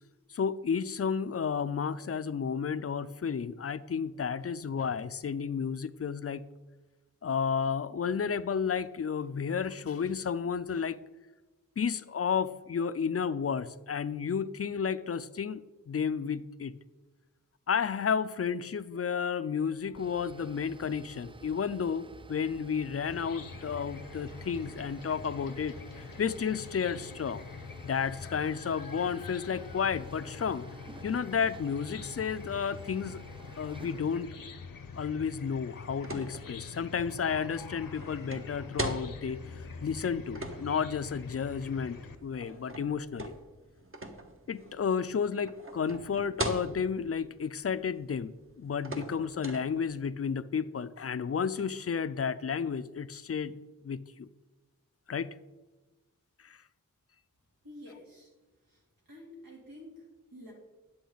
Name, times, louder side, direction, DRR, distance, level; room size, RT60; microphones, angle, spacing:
voice 1, 0.3-6.4 7.2-11.0 11.8-16.7 17.7-27.4 27.8-30.6 31.0-33.2 33.5-34.3 34.9-43.3 44.5-53.5 53.8-54.3 55.1-55.3 56.4-56.6, left 6 dB, 45° left, 14 dB, 0.5 m, -32 dB
sound 1, 19.8-34.3, right 3 dB, 15° right, 0.3 m, -52 dB
Chicken rooster / Cricket, 23.0-42.2, left 5 dB, 80° left, 0.8 m, -45 dB
sound 2, 35.5-50.1, right 1 dB, 40° right, 1.1 m, -42 dB
voice 2, 57.6-58.3 58.6-60.5, left 1 dB, 85° right, -3 dB, 3.3 m, -50 dB
10.0 x 7.8 x 4.0 m, 1.2 s
wide cardioid pair, 65°, 33 cm